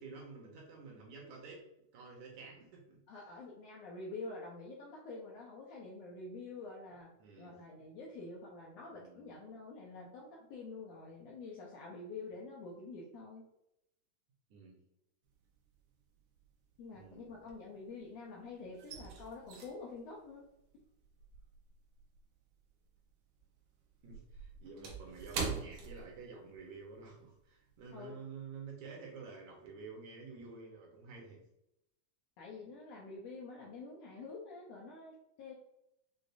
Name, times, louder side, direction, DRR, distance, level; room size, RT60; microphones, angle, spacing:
voice 1, 0.0-1.6 1.9-3.0 7.2-7.8 8.9-9.3 14.5-14.8 16.9-17.4 24.0-31.4, right 4 dB, 70° right, -1 dB, 2.1 m, -50 dB
voice 2, 3.1-7.1 7.4-13.4 16.8-20.5 27.9-28.2 32.4-35.5, left 3 dB, 75° left, -3 dB, 1.6 m, -47 dB
sound 1, 15.3-15.9 16.2-18.1 18.4-23.1 23.4-26.7 27.0-27.2 27.7-27.9, right 5 dB, 90° right, 2.5 m, -44 dB
6.6 x 2.4 x 2.6 m, 0.84 s
omnidirectional pair, 3.7 m